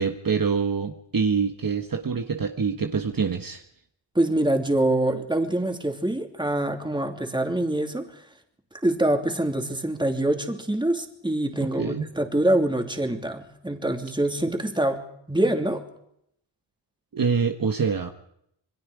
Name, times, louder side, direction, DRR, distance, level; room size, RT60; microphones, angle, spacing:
voice 1, 0.0-3.6 11.6-12.1 17.1-18.1, right 5 dB, 50° right, 6 dB, 1.5 m, -25 dB
voice 2, 4.1-8.1 8.8-15.8, right 1 dB, 10° right, 4 dB, 2.9 m, -25 dB
27.5 x 21.5 x 5.0 m, 0.74 s
wide cardioid pair, 85°, 45 cm